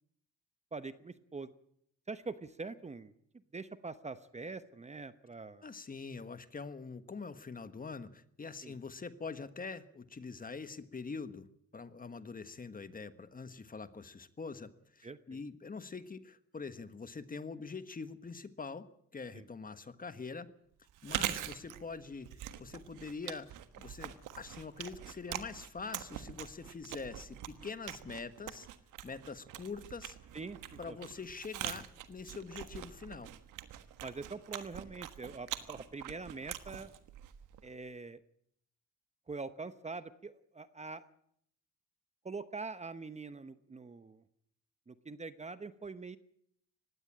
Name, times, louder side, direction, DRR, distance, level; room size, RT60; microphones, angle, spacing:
voice 1, 0.7-1.5 2.1-3.1 3.5-5.7 8.6-8.8 15.0-15.4 19.3-19.4 30.3-31.0 34.0-36.9 37.6-38.2 39.3-41.0 42.2-44.2 44.9-46.2, right 4 dB, 20° right, 12 dB, 0.9 m, -44 dB
voice 2, 5.6-11.5 11.7-20.5 21.0-22.3 22.6-28.7 29.0-30.2 30.8-33.3, left 4 dB, 30° left, 12 dB, 1.4 m, -44 dB
Chewing mastication, 20.9-37.8, right 12 dB, 90° right, 1.4 m, -44 dB
20.0 x 16.0 x 8.8 m, 0.71 s
cardioid pair, 90°, 30 cm